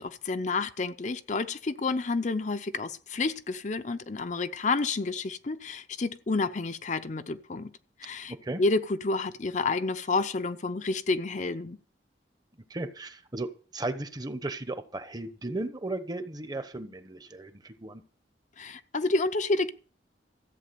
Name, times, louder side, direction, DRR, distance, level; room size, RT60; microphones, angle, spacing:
voice 1, 0.0-7.7 8.0-11.8 18.6-19.7, left 3 dB, 40° left, 0.6 m, -29 dB
voice 2, 12.7-18.0, right 2 dB, 20° right, 1.0 m, -35 dB
14.0 x 8.4 x 6.8 m
head